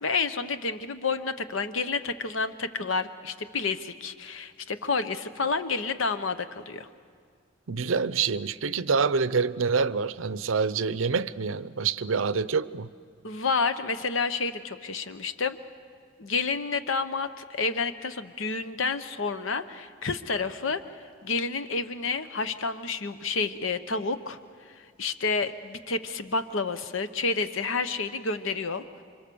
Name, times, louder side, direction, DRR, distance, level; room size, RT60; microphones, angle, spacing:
voice 1, 0.0-6.9 13.2-15.6 16.2-20.8 21.2-24.4 24.8-29.0, left 4 dB, 80° left, 1.0 m, -29 dB
voice 2, 7.7-12.9, right 5 dB, 80° right, 0.6 m, -26 dB
28.0 x 25.0 x 7.0 m
head